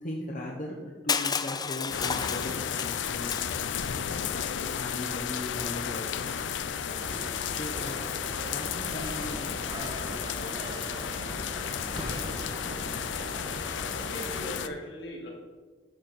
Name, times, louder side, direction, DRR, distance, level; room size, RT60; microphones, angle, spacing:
voice 1, 0.0-4.1 4.8-7.0 7.5-8.1 8.4-11.5, left 1 dB, 45° left, -2 dB, 0.9 m, -40 dB
Crushing, 1.1-4.0, left 6 dB, 20° left, 0.4 m, -32 dB
sound 1, 1.9-14.7, left 8 dB, 90° left, 0.5 m, -33 dB
sound 2, 6.9-14.5, right 1 dB, 25° right, 1.1 m, -40 dB
voice 2, 7.7-8.1 13.9-15.3, equal, 70° left, -2 dB, 2.4 m, -39 dB
10.0 x 4.3 x 6.7 m, 1.4 s
head